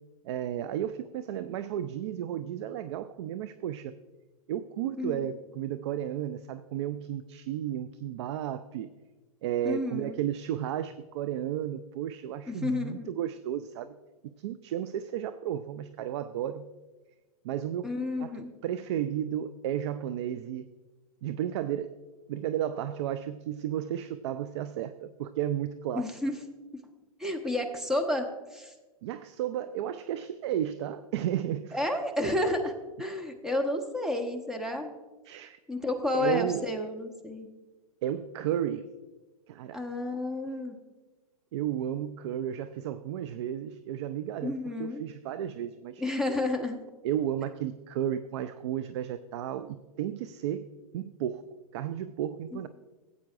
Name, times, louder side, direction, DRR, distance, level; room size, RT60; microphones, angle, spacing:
voice 1, 0.2-3.9 4.5-8.9 9.4-13.9 14.4-16.7 17.4-17.9 18.2-20.7 21.2-22.0 22.3-26.1 29.0-31.9 35.2-35.6 36.1-36.7 38.0-38.9 39.5-39.8 41.5-46.0 47.0-51.5 51.7-52.7, right 10 dB, 50° right, 13 dB, 0.4 m, -33 dB
voice 2, 9.6-10.1 12.5-13.1 17.8-18.5 25.9-26.4 27.2-28.3 28.5-28.7 31.7-32.7 33.0-34.9 35.7-37.5 39.7-40.8 44.4-45.0 46.0-46.8, left 2 dB, 5° right, 3 dB, 0.9 m, -31 dB
16.0 x 8.4 x 2.5 m, 1.2 s
figure-of-eight pair, 110°, 19 cm